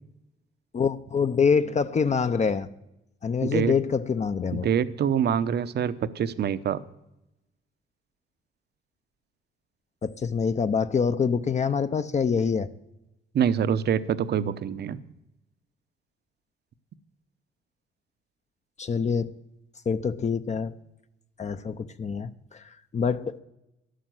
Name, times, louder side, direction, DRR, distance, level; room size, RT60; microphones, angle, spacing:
voice 1, 0.7-2.7 3.2-4.7 10.0-12.7 18.8-19.3 19.9-20.7 21.4-23.4, left 6 dB, 35° left, 10 dB, 0.8 m, -25 dB
voice 2, 3.4-3.7 4.5-6.8 13.3-15.0, right 8 dB, 55° right, 15 dB, 0.8 m, -25 dB
12.5 x 11.5 x 7.7 m, 0.88 s
cardioid pair, 90°, 20 cm